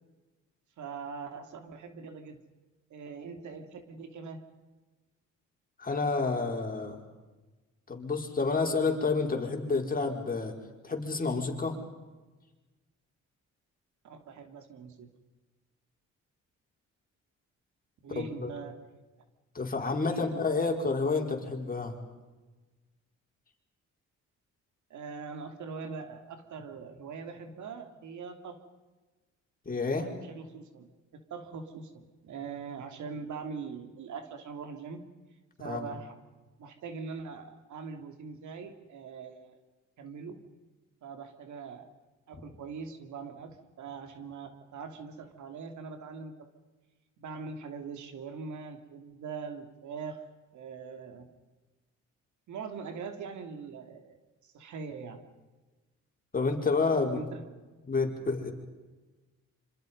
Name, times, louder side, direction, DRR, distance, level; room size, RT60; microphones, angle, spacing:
voice 1, 0.8-2.4 2.9-4.4 14.0-15.1 18.0-18.8 20.0-20.7 24.9-28.6 29.8-35.0 35.6-36.2 36.6-39.6 40.0-40.4 41.0-41.9 42.3-46.5 47.2-50.3 50.5-51.3 52.5-54.2 54.4-55.2 57.1-57.4, right 5 dB, 75° right, 7 dB, 3.1 m, -42 dB
voice 2, 5.8-7.0 7.9-10.5 10.8-11.8 18.2-18.5 19.5-21.9 29.7-30.1 35.6-35.9 56.3-57.3 57.8-58.5, left 4 dB, 30° left, 2 dB, 5.1 m, -29 dB
26.5 x 26.5 x 5.5 m, 1.2 s
cardioid pair, 90°, 30 cm